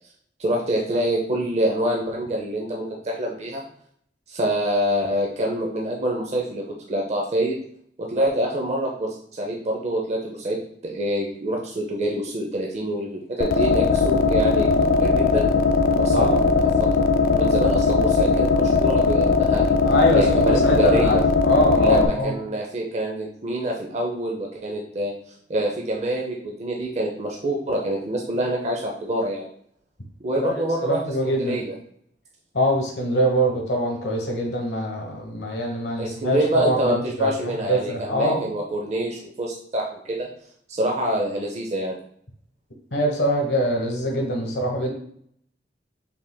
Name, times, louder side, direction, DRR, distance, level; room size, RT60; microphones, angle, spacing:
voice 1, 0.4-3.6 4.3-6.6 6.9-7.6 8.0-10.6 10.8-15.5 16.0-16.3 16.8-16.9 17.3-19.8 20.1-21.2 21.8-25.1 25.5-29.5 30.2-31.7 36.0-40.3 40.7-41.9, right 1 dB, 40° right, -1 dB, 0.6 m, -26 dB
sound 1, 13.4-22.1, left 4 dB, 55° left, 0.4 m, -19 dB
voice 2, 19.8-22.3 30.4-30.5 30.8-31.6 32.5-37.3 37.7-38.5 42.9-44.9, equal, 75° left, 0 dB, 1.2 m, -23 dB
5.7 x 3.4 x 2.2 m, 0.66 s
head